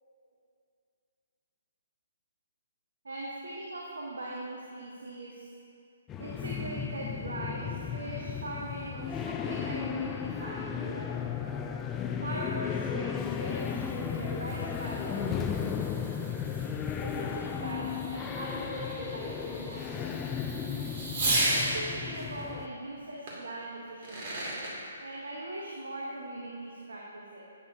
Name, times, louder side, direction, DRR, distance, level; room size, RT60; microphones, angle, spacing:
voice 1, 3.0-5.5 6.2-11.3 12.2-15.3 17.0-20.2 21.5-24.5 25.0-27.4, right 1 dB, 75° right, -3 dB, 1.0 m, -40 dB
sound 1, 6.1-22.7, left 7 dB, 20° left, 0.4 m, -35 dB
Fireworks, 13.0-21.7 23.3-23.4 23.9-24.7, right 1 dB, 40° right, 2.1 m, -36 dB
10.5 x 8.6 x 2.7 m, 2.5 s
figure-of-eight pair, 130°, 0 cm